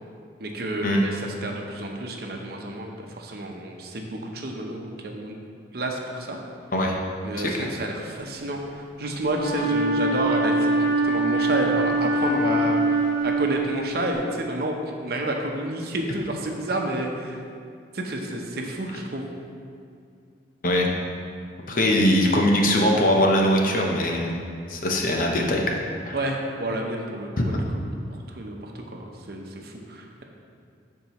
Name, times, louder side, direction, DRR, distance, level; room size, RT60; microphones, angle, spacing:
voice 1, 0.4-5.4 5.7-6.4 7.2-17.4 17.9-19.3 21.7-21.8 26.1-27.9 28.3-30.2, right 1 dB, 55° right, 1 dB, 0.8 m, -30 dB
voice 2, 7.4-7.7 20.6-20.9 21.7-24.3 24.7-25.6 26.0-26.2, left 1 dB, 50° left, 0 dB, 0.8 m, -21 dB
Wind instrument woodwind instrument, 9.3-14.1, right 2 dB, 30° left, 1.1 m, -23 dB
12.5 x 4.6 x 3.0 m, 2.4 s
head